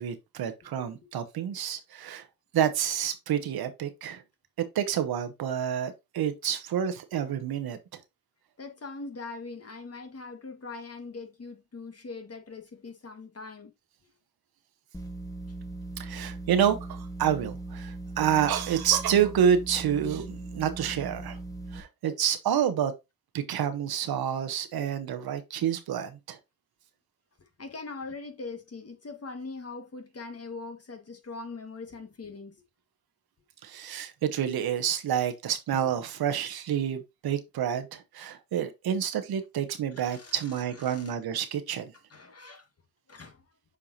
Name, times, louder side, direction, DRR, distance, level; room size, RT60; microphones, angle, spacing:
voice 1, 0.0-2.2 2.5-4.2 4.7-7.8 16.0-21.4 21.7-22.9 23.3-26.4 33.6-41.9, right 9 dB, 85° right, 1.1 m, -28 dB
voice 2, 8.6-13.7 27.6-32.6 35.8-35.9 40.0-41.2 42.1-42.7 43.1-43.4, left 3 dB, 40° left, 1.8 m, -41 dB
sound 1, 14.9-21.8, right 2 dB, 10° left, 1.6 m, -39 dB
7.5 x 4.7 x 2.8 m
cardioid pair, 55°, 36 cm